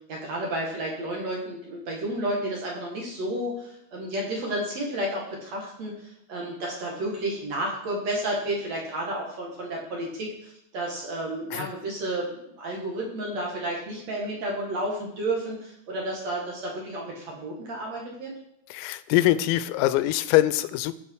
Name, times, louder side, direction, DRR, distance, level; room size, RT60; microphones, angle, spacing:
voice 1, 0.1-18.3, right 1 dB, 50° right, -2 dB, 2.1 m, -31 dB
voice 2, 18.7-20.9, left 15 dB, 90° left, 14 dB, 3.3 m, -23 dB
16.5 x 7.1 x 4.8 m, 0.75 s
omnidirectional pair, 5.9 m